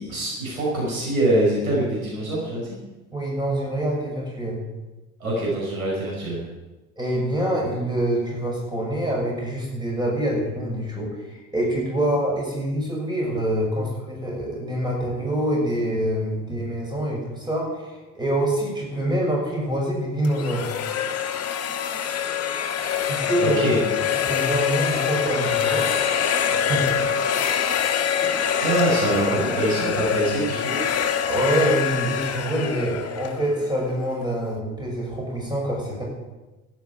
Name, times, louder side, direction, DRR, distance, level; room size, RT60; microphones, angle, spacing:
voice 1, 0.0-2.8 5.2-6.4 23.6-23.8 28.2-28.3 28.6-30.8, right 1 dB, 75° right, -4 dB, 5.4 m, -24 dB
voice 2, 3.1-4.6 7.0-20.7 23.0-23.6 24.1-25.9 26.5-27.0 31.2-36.0, right 1 dB, 10° right, -2 dB, 6.5 m, -25 dB
sound 1, 20.2-34.1, left 8 dB, 35° left, 1.7 m, -25 dB
12.5 x 9.8 x 9.4 m, 1.1 s
figure-of-eight pair, 60°, 42 cm